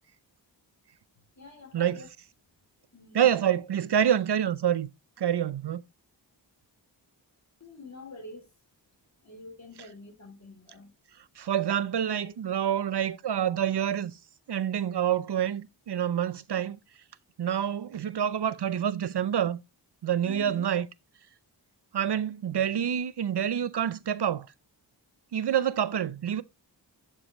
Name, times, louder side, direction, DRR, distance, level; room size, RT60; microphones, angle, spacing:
voice 1, 1.4-2.1 2.9-3.4 7.6-8.5 9.2-10.9 12.1-12.3 12.7-12.8 20.3-20.6, left 3 dB, 40° left, 3.8 m, -46 dB
voice 2, 3.1-4.9 5.2-5.8 11.4-14.2 14.5-16.8 17.4-19.6 20.0-20.9 21.9-24.5 25.3-26.4, right 9 dB, 65° right, 0.6 m, -27 dB
11.0 x 4.9 x 3.0 m
wide cardioid pair, 65°, 44 cm